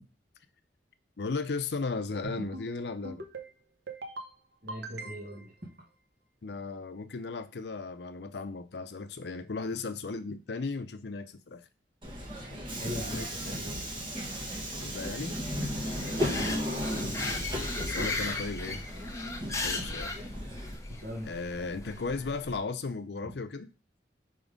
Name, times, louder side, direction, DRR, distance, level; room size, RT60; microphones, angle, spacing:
voice 1, 1.2-3.3 6.4-11.6 12.9-13.3 14.8-15.4 17.3-18.8 19.6-20.2 21.2-23.7, left 4 dB, 70° left, 0.6 m, -36 dB
sound 1, 2.2-2.7 3.0-3.5 3.9-4.3 4.7-5.5, right 2 dB, 75° right, 0.9 m, -41 dB
voice 2, 4.6-5.7 12.7-13.8 14.8-15.1 16.2-16.8 20.9-21.3, equal, 55° right, 1.6 m, -41 dB
Subway metro underground, 12.0-20.8, equal, 30° right, 1.4 m, -35 dB
sound 2, 15.6-22.6, left 3 dB, 15° left, 0.7 m, -37 dB
5.1 x 3.7 x 5.2 m
head